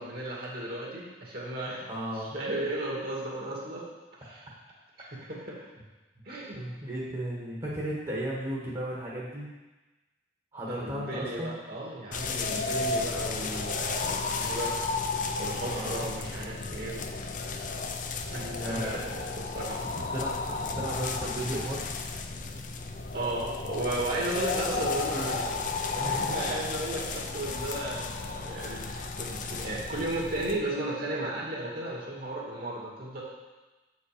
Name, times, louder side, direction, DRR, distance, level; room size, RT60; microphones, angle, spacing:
voice 1, 0.0-3.9 4.2-4.4 5.0-5.6 6.2-6.6 10.7-14.8 15.4-17.1 18.3-19.8 23.1-25.5 25.9-33.2, right 1 dB, 60° right, -4 dB, 2.2 m, -35 dB
voice 2, 1.9-2.3 6.5-9.5 10.5-11.5 15.7-16.0 18.3-19.0 20.1-20.3 20.7-21.9 24.3-24.8 25.1-25.3, right 1 dB, 30° right, -5 dB, 1.4 m, -34 dB
sound 1, 12.1-30.6, left 4 dB, 50° left, 0.6 m, -33 dB
7.8 x 5.3 x 5.0 m, 1.2 s
head